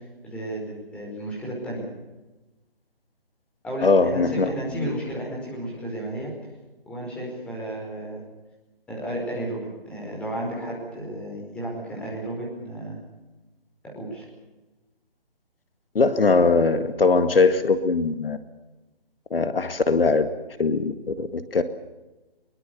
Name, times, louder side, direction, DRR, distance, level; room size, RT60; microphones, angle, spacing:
voice 1, 0.2-1.8 3.6-6.3 6.9-8.2 8.9-13.0 14.0-14.2, right 1 dB, 5° left, -3 dB, 5.1 m, -33 dB
voice 2, 3.8-4.5 16.0-18.4 19.3-20.3 20.6-21.6, left 4 dB, 65° left, 10 dB, 2.0 m, -21 dB
23.5 x 22.0 x 7.0 m, 1.1 s
figure-of-eight pair, 165°, 30 cm